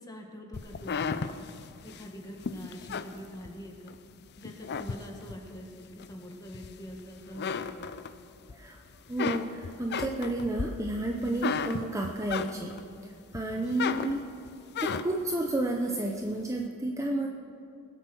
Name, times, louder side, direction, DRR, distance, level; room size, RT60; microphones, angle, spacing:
voice 1, 0.0-1.3 1.8-4.0 4.4-7.9 13.5-13.9, equal, 15° left, 2 dB, 1.6 m, -45 dB
sound 1, 0.5-4.0 4.4-5.5 6.0-7.0 7.3-8.5 8.9-12.9 13.3-15.3, left 5 dB, 50° left, 0.5 m, -34 dB
voice 2, 9.1-12.8 13.3-14.3 14.8-17.3, right 2 dB, 15° right, 1 dB, 0.7 m, -31 dB
20.5 x 7.8 x 6.3 m, 2.4 s
head